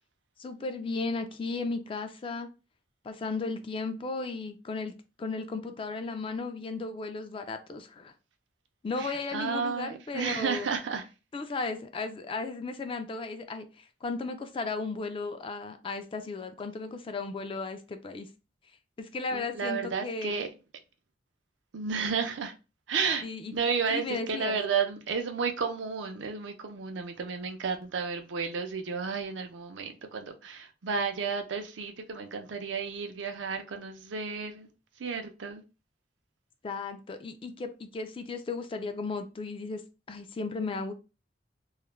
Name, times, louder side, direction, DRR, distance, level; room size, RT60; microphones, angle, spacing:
voice 1, 0.4-2.5 3.0-4.9 5.2-8.1 8.8-10.7 11.3-18.3 19.0-20.4 23.2-23.5 23.9-24.6 36.6-39.8 40.1-40.9, left 3 dB, 30° left, 0.3 m, -35 dB
voice 2, 9.0-11.1 19.3-20.5 21.7-22.5 22.9-23.2 23.5-34.7 35.0-35.6, right 5 dB, 80° right, 0.5 m, -32 dB
2.3 x 2.1 x 3.0 m
head